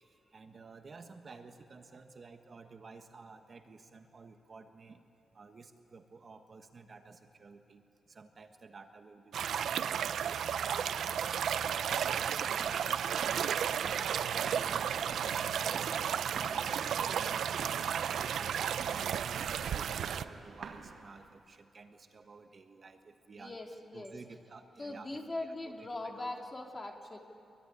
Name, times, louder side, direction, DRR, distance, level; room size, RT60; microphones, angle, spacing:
voice 1, 0.3-5.0 5.3-7.8 8.1-23.6 23.9-26.5, right 4 dB, 40° right, 6 dB, 1.3 m, -53 dB
sound 1, 9.3-20.2, right 8 dB, 85° right, 0.6 m, -33 dB
sound 2, 11.4-21.4, right 5 dB, 70° right, 1.9 m, -48 dB
voice 2, 23.3-24.4 24.8-27.2, left 2 dB, 25° left, 2 dB, 2.6 m, -41 dB
24.0 x 23.0 x 9.9 m, 2.6 s
wide cardioid pair, 135°, 0 cm